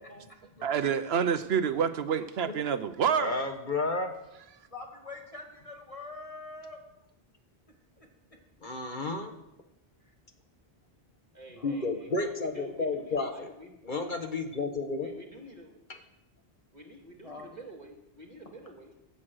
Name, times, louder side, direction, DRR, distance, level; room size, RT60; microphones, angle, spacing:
voice 1, 0.0-0.5 11.3-13.7 15.0-15.8 16.7-18.9, right 1 dB, 45° right, 2.5 m, -48 dB
voice 2, 0.6-3.4, right 7 dB, 80° right, 1.0 m, -28 dB
voice 3, 3.1-4.1 8.6-9.3 11.6-13.5 13.9-15.1, left 3 dB, 50° left, 1.4 m, -31 dB
voice 4, 4.7-6.8 8.0-8.1 11.6-12.1 17.2-17.5, left 3 dB, 35° left, 2.4 m, -44 dB
16.5 x 9.0 x 6.4 m
omnidirectional pair, 1.1 m